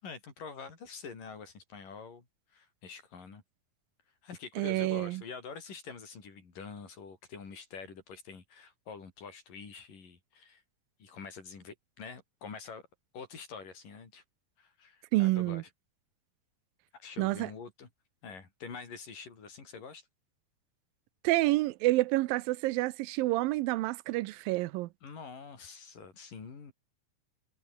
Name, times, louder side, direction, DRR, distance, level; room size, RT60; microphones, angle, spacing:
voice 1, 0.0-2.3 2.5-3.4 4.2-10.6 11.0-12.9 13.1-14.2 14.6-15.6 16.9-17.9 18.2-20.1 25.0-26.7, left 5 dB, 70° left, 6.4 m, -46 dB
voice 2, 4.6-5.2 15.1-15.6 17.2-17.5 21.2-24.9, right 19 dB, 85° right, 2.4 m, -28 dB
omnidirectional pair, 4.0 m